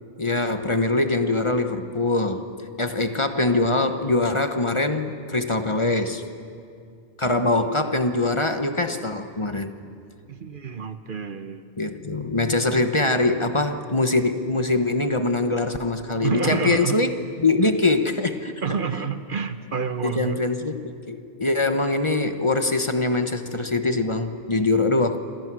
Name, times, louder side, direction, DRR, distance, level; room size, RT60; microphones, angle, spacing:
voice 1, 0.2-2.5 2.8-6.2 7.2-9.7 11.8-17.1 17.4-18.5 20.0-25.2, left 2 dB, 30° left, 7 dB, 1.1 m, -23 dB
voice 2, 10.3-11.6 16.2-17.0 18.6-20.4, right 6 dB, 55° right, 10 dB, 1.1 m, -28 dB
28.0 x 26.0 x 6.2 m, 2.4 s
omnidirectional pair, 1.1 m